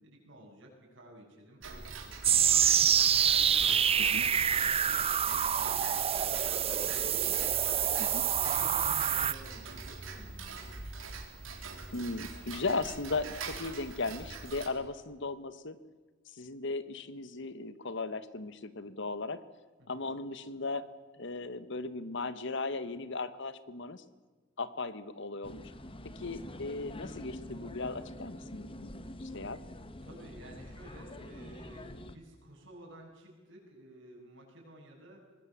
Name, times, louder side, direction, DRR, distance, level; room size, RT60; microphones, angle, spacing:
voice 1, 0.0-2.9 3.3-8.0 8.3-10.6 19.8-20.1 30.0-35.3, right 1 dB, 65° right, 0 dB, 7.5 m, -53 dB
Tick-tock, 1.6-14.7, right 4 dB, 85° right, 3.6 m, -44 dB
sound 1, 2.2-9.3, right 8 dB, 30° right, 0.7 m, -27 dB
voice 2, 11.9-15.7 16.3-19.4 19.9-20.9 21.2-24.0 24.6-25.6 26.1-28.9 29.2-29.6, left 3 dB, 65° left, 14 dB, 1.3 m, -37 dB
sound 2, 25.4-32.2, left 1 dB, 25° left, 1.3 m, -46 dB
24.0 x 20.0 x 7.4 m, 1.4 s
head